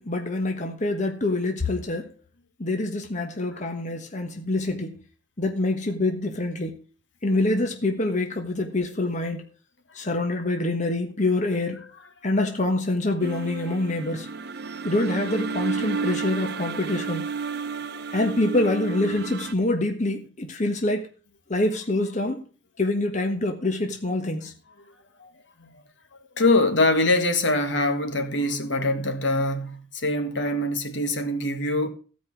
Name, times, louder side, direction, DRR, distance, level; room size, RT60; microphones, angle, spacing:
voice 1, 0.0-2.1 2.6-5.0 5.4-6.8 7.2-9.4 9.9-11.9 12.2-14.3 14.8-17.3 18.1-21.0 21.5-22.4 22.8-24.5, left 2 dB, 40° left, 1.4 m, -25 dB
sound 1, 13.2-19.5, right 5 dB, 60° right, 0.8 m, -32 dB
voice 2, 26.4-31.9, left 2 dB, 70° left, 1.7 m, -24 dB
15.5 x 5.3 x 6.1 m
head